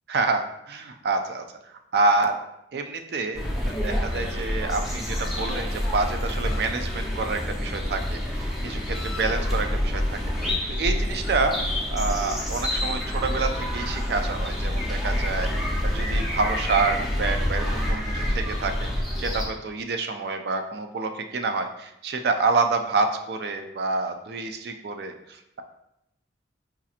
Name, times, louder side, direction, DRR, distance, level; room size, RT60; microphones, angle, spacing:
voice 1, 0.1-2.4 2.7-11.6 11.9-18.9 19.2-25.6, right 3 dB, 60° right, 6 dB, 0.4 m, -28 dB
sound 1, 3.3-19.4, left 1 dB, ahead, 0.6 m, -27 dB
4.9 x 2.8 x 2.4 m, 0.82 s
head